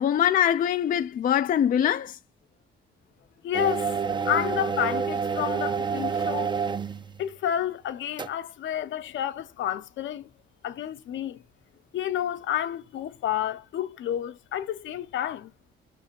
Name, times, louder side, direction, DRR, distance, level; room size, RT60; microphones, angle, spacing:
voice 1, 0.0-2.2, left 10 dB, 45° left, 0.4 m, -23 dB
voice 2, 3.4-6.5 7.2-10.3 10.6-11.4 11.9-15.5, left 10 dB, 70° left, 0.8 m, -30 dB
sound 1, 3.5-7.2 8.2-8.3, right 6 dB, 25° right, 0.5 m, -28 dB
5.6 x 3.3 x 5.1 m
cardioid pair, 90°, 20 cm